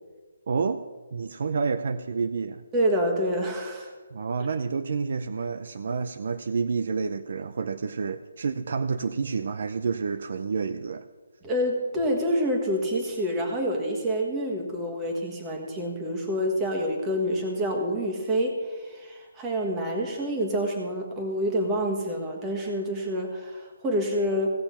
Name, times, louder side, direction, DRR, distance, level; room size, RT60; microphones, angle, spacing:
voice 1, 0.5-0.8 1.1-2.6 4.1-11.0, right 5 dB, 50° right, 12 dB, 0.5 m, -29 dB
voice 2, 2.7-3.9 11.4-24.5, equal, 10° right, 1 dB, 1.5 m, -27 dB
16.5 x 6.8 x 5.7 m, 1.4 s
hypercardioid pair, 170°, 0 cm